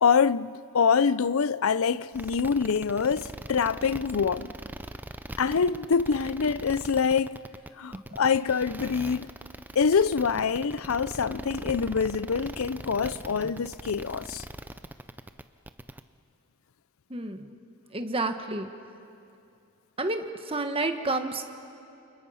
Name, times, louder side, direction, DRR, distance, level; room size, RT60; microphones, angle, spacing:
voice 1, 0.0-4.5 5.4-7.4 7.8-9.3 9.8-14.4, left 6 dB, 65° left, 0.5 m, -25 dB
sound 1, 2.1-16.0, right 1 dB, 10° right, 0.5 m, -40 dB
voice 2, 17.1-17.5 17.9-18.7 20.0-21.4, right 2 dB, 25° right, 1.3 m, -30 dB
29.5 x 28.0 x 5.7 m
head